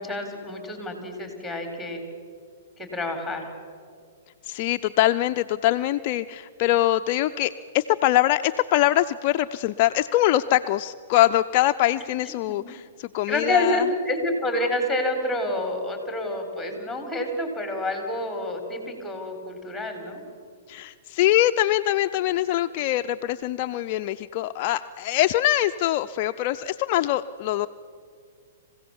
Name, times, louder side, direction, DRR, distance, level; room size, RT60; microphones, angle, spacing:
voice 1, 0.0-2.0 2.8-3.5 12.5-12.6 13.3-20.2, left 1 dB, ahead, 4 dB, 4.2 m, -28 dB
voice 2, 4.4-13.8 20.7-27.7, left 14 dB, 45° left, 8 dB, 0.5 m, -23 dB
26.5 x 16.5 x 7.2 m, 2.1 s
hypercardioid pair, 130°, 0 cm